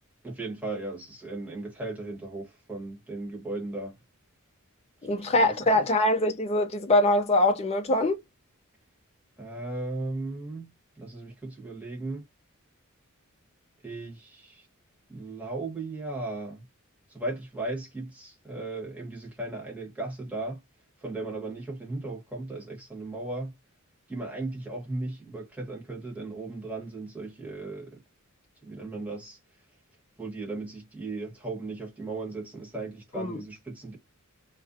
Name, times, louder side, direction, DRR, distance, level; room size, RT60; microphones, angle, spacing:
voice 1, 0.2-3.9 5.0-5.5 9.4-10.7 11.0-12.2 13.8-14.7 15.1-16.6 17.1-20.6 21.0-23.5 24.1-28.0 28.6-29.4 30.2-34.0, right 2 dB, 5° right, 1.1 m, -36 dB
voice 2, 5.0-8.2 33.2-33.4, left 1 dB, 30° left, 0.5 m, -23 dB
2.4 x 2.2 x 2.5 m
head